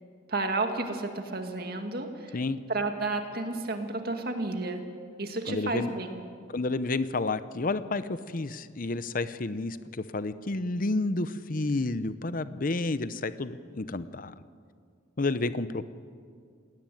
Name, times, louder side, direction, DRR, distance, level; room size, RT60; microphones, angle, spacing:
voice 1, 0.3-2.4 2.7-4.8 5.2-6.2, right 3 dB, 50° right, 5 dB, 2.2 m, -31 dB
voice 2, 5.5-5.9 6.5-9.8 10.1-14.3 15.2-15.8, left 2 dB, 45° left, 13 dB, 0.7 m, -30 dB
19.5 x 17.5 x 9.3 m, 2.1 s
head